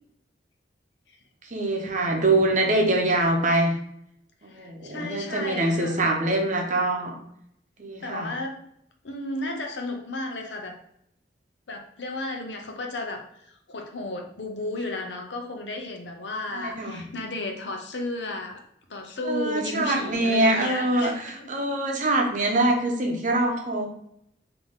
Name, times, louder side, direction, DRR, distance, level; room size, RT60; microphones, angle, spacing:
voice 1, 1.5-3.7 4.4-7.1 7.8-8.3 16.5-17.0 19.2-23.9, right 2 dB, 45° right, 2 dB, 0.8 m, -24 dB
voice 2, 4.5-6.0 8.0-8.6 9.0-10.7 11.7-18.6 18.9-21.5, left 2 dB, 90° left, 3 dB, 0.8 m, -33 dB
3.9 x 2.8 x 3.6 m, 0.73 s
head